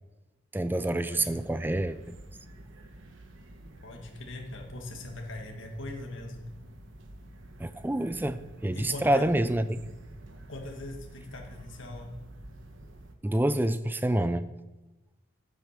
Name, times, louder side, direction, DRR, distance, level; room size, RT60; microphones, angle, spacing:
voice 1, 0.5-2.2 7.6-9.8 13.2-14.5, right 1 dB, 10° right, 13 dB, 0.4 m, -27 dB
sound 1, 1.3-13.2, right 1 dB, 75° right, 1.1 m, -49 dB
voice 2, 3.8-6.4 8.7-9.3 10.5-12.1, left 2 dB, 75° left, 2 dB, 1.6 m, -40 dB
9.1 x 8.2 x 6.5 m, 1.1 s
head